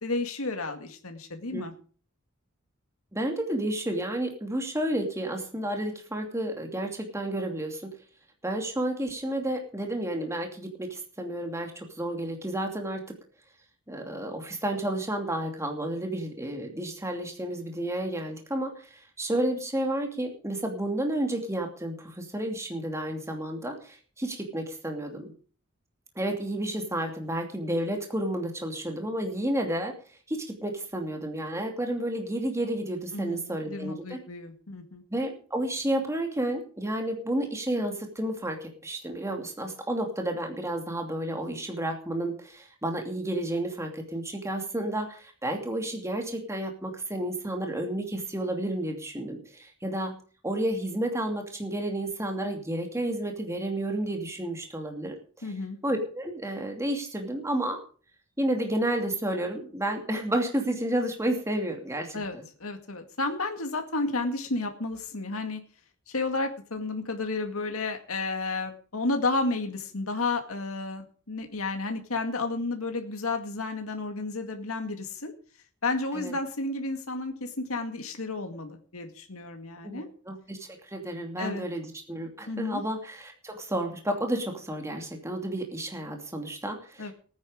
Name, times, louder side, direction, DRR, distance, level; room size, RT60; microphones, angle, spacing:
voice 1, 0.0-1.7 33.1-35.0 55.4-55.8 62.1-65.6 66.1-75.3 75.8-80.1 81.4-81.6 82.5-82.8 87.0-87.1, left 3 dB, 75° left, 5 dB, 2.1 m, -32 dB
voice 2, 3.1-7.9 8.4-13.0 13.9-25.3 26.2-29.9 30.3-34.2 35.1-50.1 50.4-55.5 55.8-57.8 58.4-62.4 76.1-76.3 79.8-80.0 80.3-87.1, right 1 dB, 15° right, 3 dB, 2.6 m, -31 dB
19.0 x 9.6 x 5.1 m, 0.41 s
head